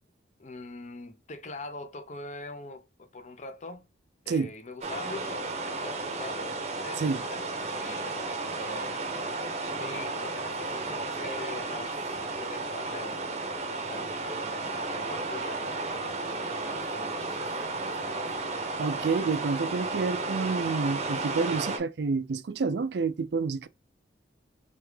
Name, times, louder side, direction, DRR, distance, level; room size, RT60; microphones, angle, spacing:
voice 1, 0.4-3.9 4.2-6.6 6.8-9.1 9.8-13.5 13.9-18.4, left 2 dB, 40° left, 0.7 m, -43 dB
sound 1, 4.8-21.8, right 3 dB, 35° right, 0.7 m, -33 dB
voice 2, 18.8-23.7, right 4 dB, 65° right, 0.4 m, -29 dB
3.5 x 3.4 x 3.3 m
head